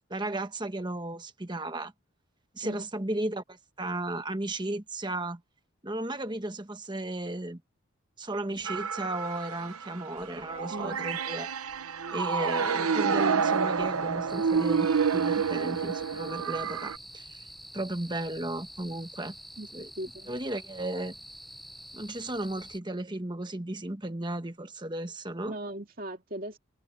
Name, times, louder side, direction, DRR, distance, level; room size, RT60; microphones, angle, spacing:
voice 1, 0.1-1.9 2.5-5.4 5.8-7.6 8.2-11.5 12.1-17.5 17.7-19.3 19.7-19.9 20.3-21.1 21.9-25.5, right 1 dB, 20° right, 1.2 m, -35 dB
sound 1, 8.6-17.0, right 6 dB, 85° right, 0.9 m, -28 dB
voice 2, 10.7-11.0 15.4-15.5 19.6-19.7 20.0-20.3 25.4-26.6, right 1 dB, 40° right, 2.3 m, -38 dB
sound 2, 14.3-22.8, equal, ahead, 0.6 m, -47 dB
head